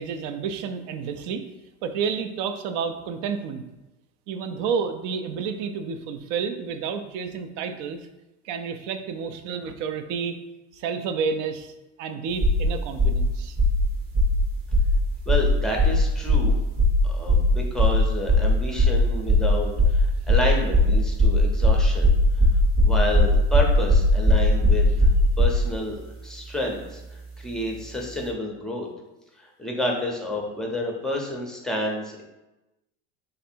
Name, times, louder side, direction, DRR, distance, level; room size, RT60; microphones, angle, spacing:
voice 1, 0.0-1.4 1.8-3.6 4.3-8.1 8.4-10.4 10.7-11.7 12.0-13.6, right 6 dB, 60° right, 8 dB, 0.6 m, -30 dB
sound 1, 12.4-12.7 13.0-13.2 13.6-13.8 14.1-14.4 14.7-14.9 15.3-15.5 15.8-16.0 16.3-16.5 16.8-17.0 17.3-17.5 17.8-18.0 18.3-18.5 18.8-19.0 19.3-19.5 19.8-20.0 20.3-25.6, left 1 dB, 30° right, 0.8 m, -18 dB
voice 2, 15.3-16.6 17.0-22.1 22.8-25.1 25.4-26.0 26.2-28.9 29.4-32.2, left 1 dB, ahead, 0 dB, 0.6 m, -29 dB
3.2 x 2.6 x 4.4 m, 1.0 s
supercardioid pair, 125°, 36 cm